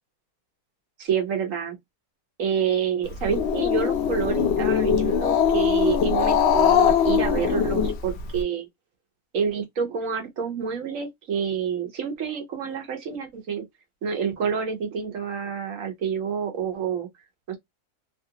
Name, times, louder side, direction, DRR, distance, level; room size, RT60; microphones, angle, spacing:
voice 1, 1.0-1.8 2.4-8.7 9.3-13.6 14.0-17.1 17.5-17.6, right 7 dB, 60° right, 1.2 m, -28 dB
Growling, 3.1-8.4, left 7 dB, 60° left, 0.7 m, -21 dB
3.2 x 2.4 x 2.8 m
omnidirectional pair, 1.6 m